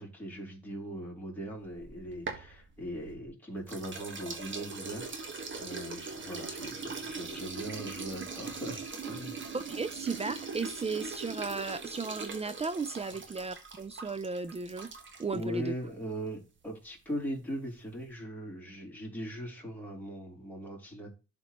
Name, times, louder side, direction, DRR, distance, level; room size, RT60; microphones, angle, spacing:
voice 1, 0.0-5.1 5.6-9.4 15.3-21.1, right 1 dB, 5° left, 3.7 m, -40 dB
sound 1, 1.7-3.3 3.7-15.4, right 4 dB, 40° right, 1.5 m, -41 dB
voice 2, 9.5-14.9 15.2-15.7, right 4 dB, 20° right, 0.4 m, -35 dB
11.0 x 4.3 x 3.0 m
cardioid pair, 90°, 30 cm